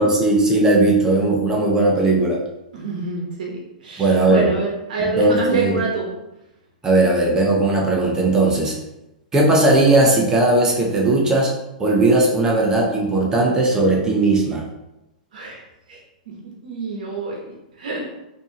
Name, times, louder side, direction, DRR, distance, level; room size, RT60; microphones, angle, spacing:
voice 1, 0.0-2.4 4.0-4.5 5.2-5.8 6.8-8.7 9.3-11.5 11.8-14.6, right 2 dB, 15° right, -1 dB, 0.7 m, -17 dB
voice 2, 2.7-6.1 15.3-15.6 15.9-16.0 16.6-17.5 17.8-18.0, right 3 dB, 75° right, -1 dB, 1.0 m, -26 dB
4.4 x 2.8 x 2.9 m, 0.92 s
hypercardioid pair, 140°, 4 cm